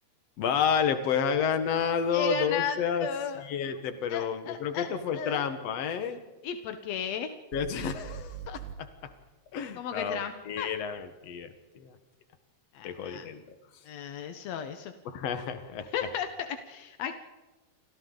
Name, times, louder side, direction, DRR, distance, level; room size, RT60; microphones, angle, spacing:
voice 1, 0.4-3.1 3.4-6.2 7.5-9.1 9.5-12.0 12.8-13.4 15.1-15.9, left 7 dB, 55° left, 8 dB, 1.9 m, -30 dB
voice 2, 2.1-3.4 4.1-4.9 5.1-5.5 6.4-7.3 9.7-10.7 12.7-13.3 13.8-14.9 15.9-17.1, left 8 dB, 75° left, 7 dB, 1.5 m, -35 dB
sound 1, 7.5-8.8, right 9 dB, 70° right, 2.9 m, -41 dB
30.0 x 25.5 x 4.0 m, 1.2 s
omnidirectional pair, 4.4 m